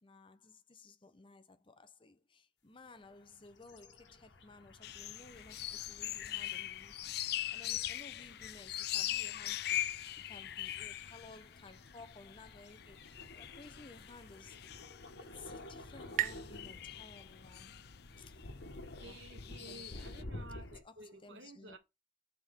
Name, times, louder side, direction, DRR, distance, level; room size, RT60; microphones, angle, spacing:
voice 1, 0.0-7.2 7.5-14.6 15.2-17.8 18.2-18.4 19.0-19.3 19.6-20.2 20.8-21.8, left 3 dB, 30° left, 0.8 m, -56 dB
sound 1, 3.1-20.8, left 1 dB, 75° left, 1.3 m, -52 dB
sound 2, 4.8-20.2, left 13 dB, 60° left, 0.4 m, -42 dB
sound 3, 14.7-18.1, right 12 dB, 45° right, 0.4 m, -42 dB
voice 2, 19.0-21.8, right 2 dB, 80° right, 2.1 m, -53 dB
6.2 x 4.5 x 5.2 m
head